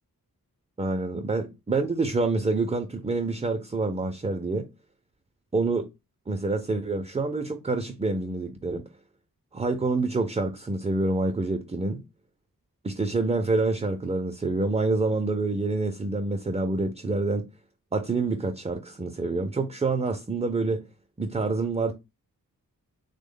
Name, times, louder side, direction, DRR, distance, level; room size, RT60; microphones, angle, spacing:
voice 1, 0.8-4.7 5.5-5.9 6.3-8.9 9.5-12.0 12.8-17.5 17.9-20.8 21.2-21.9, right 3 dB, 20° right, 0.3 m, -27 dB
3.4 x 2.1 x 3.6 m
wide cardioid pair, 95°, 36 cm